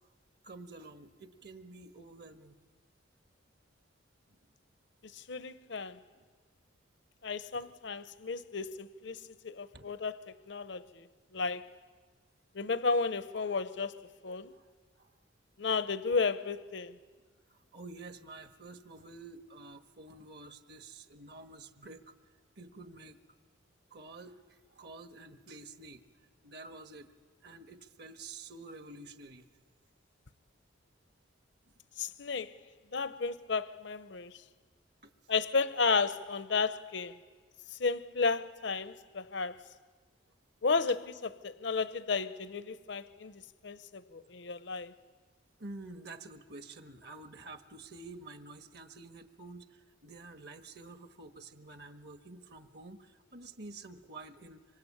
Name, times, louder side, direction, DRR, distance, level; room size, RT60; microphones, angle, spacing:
voice 1, 0.4-2.6 4.3-4.4 6.1-6.2 7.5-7.6 9.7-9.9 14.5-14.7 15.0-15.1 17.5-22.1 22.6-23.2 23.9-26.0 26.4-27.1 27.4-29.5 35.0-35.1 45.6-54.8, right 3 dB, 55° right, 1.4 m, -49 dB
voice 2, 5.1-6.0 7.2-11.1 11.3-11.7 12.5-14.5 15.6-17.0 32.0-32.5 32.9-34.3 35.3-37.2 37.7-39.6 40.6-41.0 41.4-44.9, left 4 dB, 65° left, 0.8 m, -33 dB
25.5 x 25.5 x 8.7 m
head